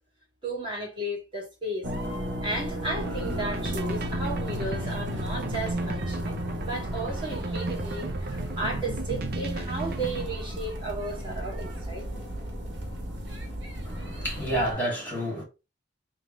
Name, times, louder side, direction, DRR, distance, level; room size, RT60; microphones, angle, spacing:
voice 1, 0.4-1.9 2.4-12.1, right 2 dB, 30° right, 2.3 m, -34 dB
sound 1, 1.8-14.7, equal, 90° right, 1.5 m, -34 dB
sound 2, 3.0-10.3, right 2 dB, 55° right, 0.6 m, -35 dB
voice 2, 13.8-15.4, right 1 dB, 10° left, 2.5 m, -29 dB
3.7 x 3.5 x 3.2 m
head